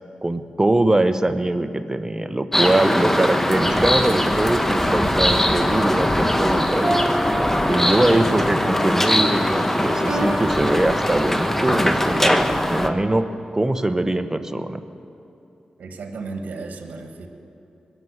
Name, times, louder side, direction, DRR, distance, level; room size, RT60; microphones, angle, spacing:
voice 1, 0.2-7.0 7.7-14.8, right 1 dB, 20° right, 10 dB, 0.9 m, -22 dB
sound 1, 2.5-12.9, left 1 dB, 10° left, 1.2 m, -21 dB
sound 2, 5.6-12.0, left 2 dB, 60° left, 1.7 m, -33 dB
sound 3, 6.8-8.4 10.1-11.6, right 1 dB, 40° right, 2.3 m, -28 dB
voice 2, 15.8-17.3, right 3 dB, 80° right, 5 dB, 1.3 m, -34 dB
21.0 x 7.1 x 7.9 m, 2.9 s
cardioid pair, 45°, 3 cm